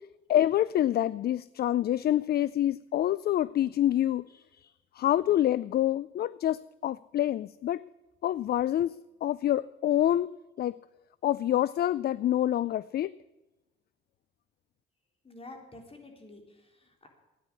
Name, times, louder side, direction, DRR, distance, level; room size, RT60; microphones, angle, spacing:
voice 1, 0.3-4.7 4.9-7.8 8.2-9.0 9.2-10.3 10.6-10.8 11.2-13.1, left 12 dB, 55° left, 19 dB, 0.4 m, -27 dB
voice 2, 15.2-17.1, left 2 dB, 30° left, 3 dB, 3.8 m, -49 dB
14.0 x 9.9 x 8.4 m, 1.0 s
cardioid pair, 90°, 20 cm